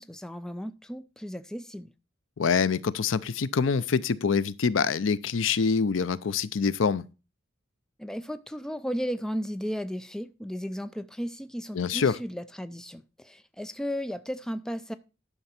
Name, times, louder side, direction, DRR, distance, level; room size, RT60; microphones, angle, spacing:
voice 1, 0.0-1.9 8.0-14.9, equal, 5° left, 0.4 m, -35 dB
voice 2, 2.4-7.0 11.7-12.2, left 5 dB, 85° left, 0.5 m, -25 dB
11.0 x 5.9 x 4.3 m
head